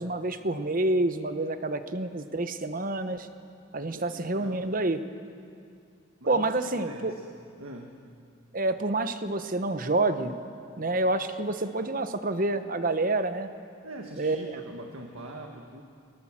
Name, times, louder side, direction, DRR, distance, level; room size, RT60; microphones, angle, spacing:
voice 1, 0.0-3.3 3.7-5.0 6.3-7.1 8.5-10.4 10.8-13.5 14.2-14.4, right 2 dB, 40° right, 10 dB, 1.0 m, -28 dB
voice 2, 3.9-4.6 6.2-7.3 7.6-8.0 13.8-15.8, right 2 dB, 85° right, 2 dB, 1.6 m, -43 dB
22.0 x 20.5 x 7.4 m, 2.4 s
head